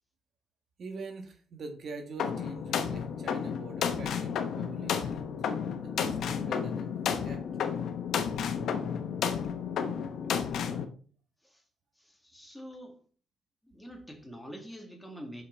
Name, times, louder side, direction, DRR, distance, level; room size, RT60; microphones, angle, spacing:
voice 1, 0.8-7.4, right 4 dB, 55° right, 1.4 m, -45 dB
sound 1, 2.2-10.8, left 7 dB, 70° left, 0.9 m, -32 dB
voice 2, 12.0-13.0 13.6-15.4, equal, 5° left, 1.9 m, -46 dB
6.3 x 5.8 x 4.4 m
cardioid pair, 90°, 0 cm